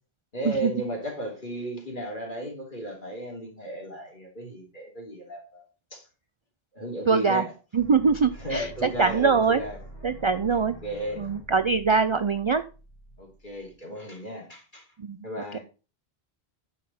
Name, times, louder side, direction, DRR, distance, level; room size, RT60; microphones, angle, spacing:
voice 1, 0.3-5.6 5.9-6.0 6.7-7.4 8.4-9.8 10.8-11.2 13.2-14.8 15.2-15.6, equal, 50° left, 0 dB, 3.3 m, -34 dB
voice 2, 7.1-7.5 7.7-9.6 10.0-10.8 11.2-12.6 15.0-15.3 15.5-15.6, right 5 dB, 45° right, 12 dB, 0.4 m, -23 dB
sound 1, 7.8-13.8, right 2 dB, 70° left, 4.5 m, -46 dB
9.4 x 6.7 x 4.2 m, 0.34 s
omnidirectional pair, 1.0 m